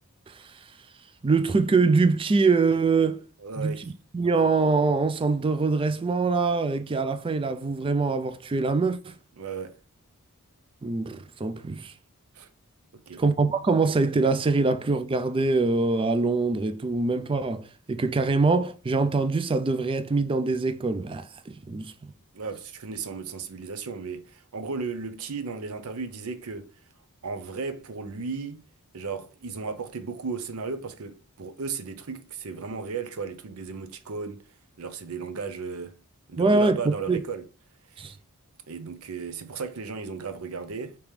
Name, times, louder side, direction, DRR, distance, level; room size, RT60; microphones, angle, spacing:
voice 1, 1.2-3.2 3.6-3.7 4.1-9.1 10.8-11.9 13.2-17.6 17.9-21.9 36.4-36.8 37.1-37.2 38.0-38.1, right 3 dB, 25° right, 0.3 m, -24 dB
voice 2, 3.4-3.9 9.4-9.8 12.3-12.5 12.9-13.2 22.3-26.7 27.2-28.6 28.9-34.4 34.8-36.0 36.3-37.5 37.9-38.1 38.7-41.0, right 4 dB, 75° right, 0.6 m, -35 dB
5.1 x 3.0 x 3.1 m
head